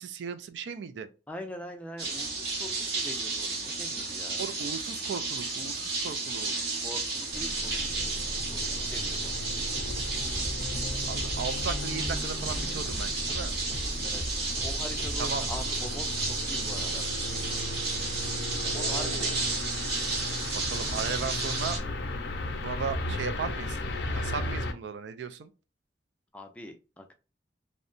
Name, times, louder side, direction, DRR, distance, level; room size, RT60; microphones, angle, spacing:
voice 1, 0.0-1.1 4.4-6.6 11.1-13.6 15.2-15.5 18.7-19.5 20.5-21.8 22.6-23.8 24.1-25.5, right 6 dB, 80° right, 0.3 m, -36 dB
voice 2, 1.3-4.4 6.8-9.5 14.0-17.0 18.6-19.5 26.3-27.1, left 1 dB, 10° left, 0.3 m, -43 dB
sound 1, 2.0-21.8, right 3 dB, 65° right, 0.9 m, -32 dB
sound 2, 6.4-16.1, equal, 30° right, 0.8 m, -41 dB
sound 3, 7.3-24.7, left 1 dB, 75° left, 0.5 m, -36 dB
2.7 x 2.1 x 2.5 m
head